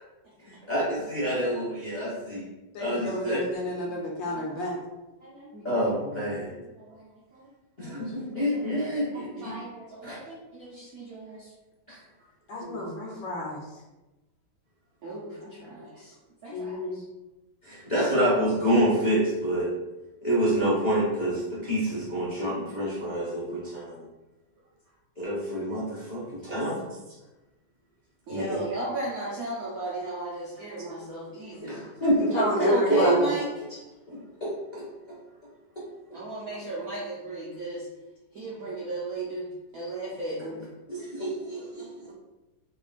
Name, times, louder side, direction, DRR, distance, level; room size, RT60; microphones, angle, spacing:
voice 1, 0.4-2.4 2.8-3.4 5.6-6.5 7.8-9.5 10.0-10.2 11.9-12.0 17.6-19.7 20.2-24.0 25.2-26.8 28.3-28.6 31.6-33.2 34.1-35.2 41.2-41.3, equal, 40° left, -9 dB, 0.6 m, -27 dB
voice 2, 2.7-4.8 12.5-13.6 16.5-17.0 32.2-33.3, left 1 dB, 70° left, -2 dB, 1.3 m, -31 dB
voice 3, 5.2-5.7 6.8-7.5 7.8-8.7 9.1-11.5 12.6-13.1 15.0-16.2 16.4-17.0 26.4-26.6 28.3-31.9 32.3-33.5 36.1-37.9 38.3-40.6, right 2 dB, 70° right, -7 dB, 0.8 m, -36 dB
3.7 x 3.3 x 2.4 m, 1.0 s
omnidirectional pair, 2.3 m